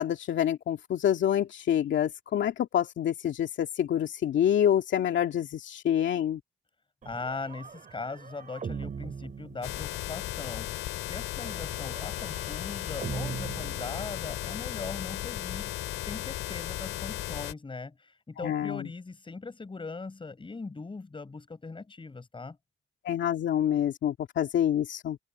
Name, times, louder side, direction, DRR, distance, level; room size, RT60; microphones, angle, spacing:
voice 1, 0.0-6.4 18.4-18.8 23.0-25.2, left 10 dB, 70° left, 2.4 m, -27 dB
sound 1, 7.0-10.3 11.4-14.6, right 6 dB, 40° right, 2.8 m, -41 dB
voice 2, 7.1-10.7 11.0-15.7 16.0-22.6, left 3 dB, 25° left, 5.5 m, -40 dB
sound 2, 9.6-17.5, left 14 dB, 85° left, 4.7 m, -35 dB
cardioid pair, 90°, 20 cm